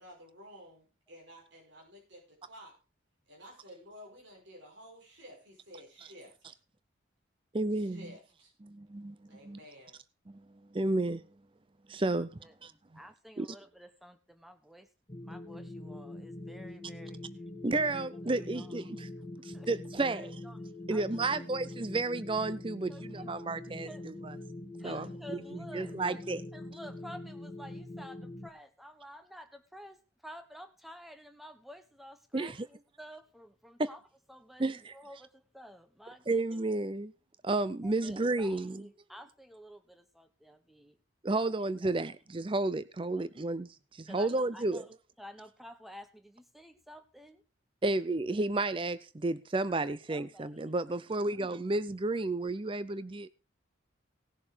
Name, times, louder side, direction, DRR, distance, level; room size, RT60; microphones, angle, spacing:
voice 1, 0.0-2.7 3.3-6.3 7.7-8.5 9.3-10.0, equal, 65° right, 5.4 m, -52 dB
voice 2, 7.5-8.1 8.6-9.2 9.4-9.6 10.3-10.4 10.7-11.2 11.9-12.7 13.4-13.5 17.6-19.1 19.7-20.3 20.9-24.3 24.8-25.4 25.7-26.4 32.3-32.6 33.8-33.9 34.6-34.9 36.3-37.1 37.4-38.9 41.2-44.8 47.8-53.3, right 2 dB, 25° right, 0.5 m, -32 dB
voice 3, 12.9-14.9 15.2-17.2 18.1-18.7 19.4-19.7 20.0-20.6 20.9-21.6 22.9-23.3 23.8-24.1 24.8-34.0 34.3-36.4 37.8-41.0 41.4-41.5 41.8-41.9 43.1-43.3 44.1-44.9 45.2-47.4 50.1-50.6, equal, ahead, 1.1 m, -51 dB
sound 1, 15.1-28.5, left 1 dB, 20° left, 1.6 m, -44 dB
18.0 x 6.9 x 5.0 m
head